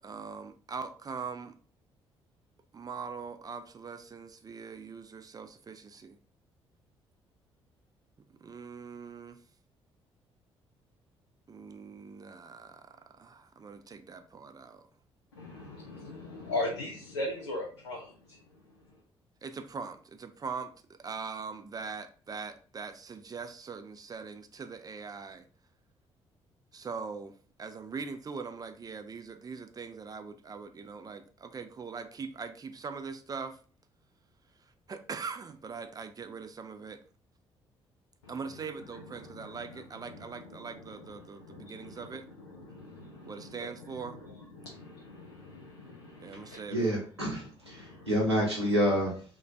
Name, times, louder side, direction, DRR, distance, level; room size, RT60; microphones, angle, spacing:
voice 1, 0.0-1.5 2.7-6.2 8.4-9.4 11.5-14.8 19.4-20.7 21.0-25.5 26.7-33.6 34.6-37.0 38.3-42.3 43.2-44.2 46.2-46.9, right 5 dB, 25° right, 8 dB, 0.4 m, -42 dB
voice 2, 15.3-19.0 38.2-46.7 47.7-48.2, left 2 dB, 80° left, -1 dB, 0.4 m, -41 dB
voice 3, 46.5-49.2, equal, 90° right, -3 dB, 0.7 m, -28 dB
2.4 x 2.3 x 3.1 m, 0.42 s
figure-of-eight pair, 40°, 14 cm